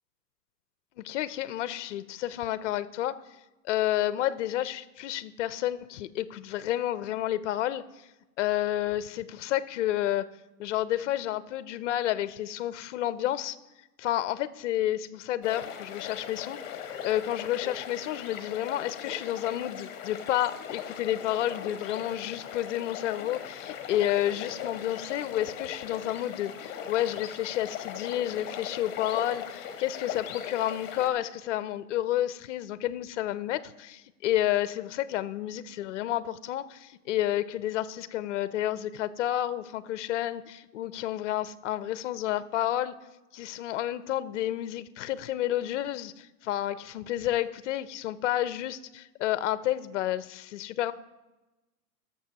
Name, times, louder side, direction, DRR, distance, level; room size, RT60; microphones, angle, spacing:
voice 1, 1.0-3.2 3.6-7.8 8.4-10.2 10.6-13.6 14.0-42.9 43.3-50.9, left 13 dB, 50° left, 16 dB, 0.5 m, -30 dB
sound 1, 15.4-31.1, left 8 dB, 20° left, 0.9 m, -39 dB
20.0 x 6.8 x 2.8 m, 1.1 s
hypercardioid pair, 140°, 49 cm